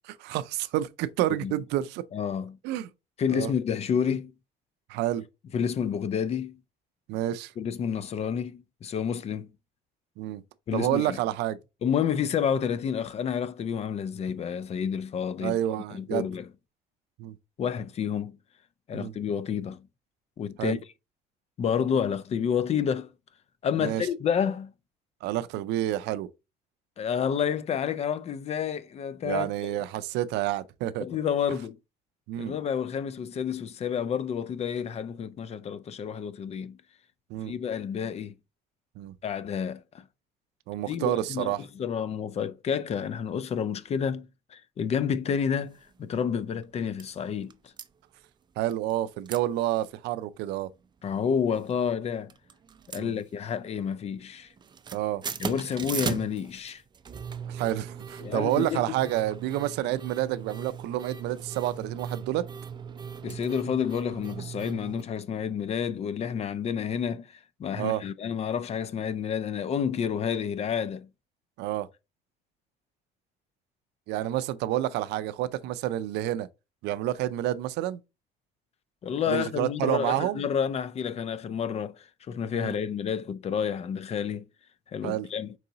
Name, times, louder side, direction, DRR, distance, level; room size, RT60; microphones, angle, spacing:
voice 1, 0.1-2.0 2.6-2.9 3.3-3.5 4.9-5.2 7.1-7.5 10.2-10.4 10.7-11.6 15.4-16.3 17.2-17.3 18.9-19.1 20.6-20.8 23.8-24.0 25.2-26.3 29.2-31.0 32.3-32.5 37.3-37.5 39.0-39.1 40.7-41.6 48.6-50.7 53.0-53.2 54.9-55.2 57.5-62.5 67.8-68.0 71.6-71.9 74.1-76.5 76.8-78.0 79.3-80.4 82.5-82.8 85.0-85.3, right 13 dB, 85° right, 0.4 m, -29 dB
voice 2, 2.1-2.6 3.2-4.3 5.5-6.6 7.6-9.5 10.7-11.2 11.8-15.6 15.9-16.5 17.6-18.4 18.9-19.8 20.4-20.8 21.6-23.1 23.6-24.7 27.0-29.8 31.0-31.8 32.4-36.8 37.4-38.3 39.2-40.0 40.9-47.7 51.0-52.3 52.9-54.5 55.4-56.8 58.2-58.8 63.2-71.1 79.0-84.5 84.9-85.5, left 7 dB, 40° left, 0.4 m, -29 dB
sound 1, 45.7-45.9 46.3-46.4 46.6-47.1 47.5-47.9 48.7-49.0 49.3-49.4 49.8-49.9 50.3-50.7 51.4-52.0 52.3-53.7 53.9-54.3 54.5-65.0, right 7 dB, 25° right, 0.4 m, -39 dB
4.7 x 3.8 x 2.7 m
cardioid pair, 110°, 17 cm